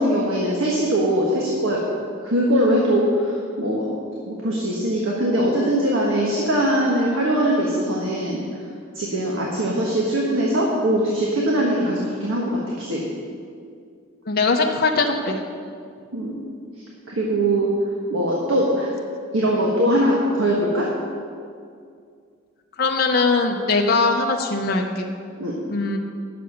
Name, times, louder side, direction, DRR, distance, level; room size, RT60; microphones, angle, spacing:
voice 1, 0.0-1.8 2.2-3.9 4.2-8.4 8.9-13.0 16.1-16.3 17.1-17.7 18.1-18.9 19.3-20.9 25.4-25.6, right 1 dB, 75° right, -3 dB, 1.4 m, -21 dB
voice 2, 14.3-15.4 22.8-25.1 25.7-26.0, left 3 dB, 50° left, 2 dB, 0.8 m, -21 dB
9.7 x 6.8 x 6.5 m, 2.2 s
head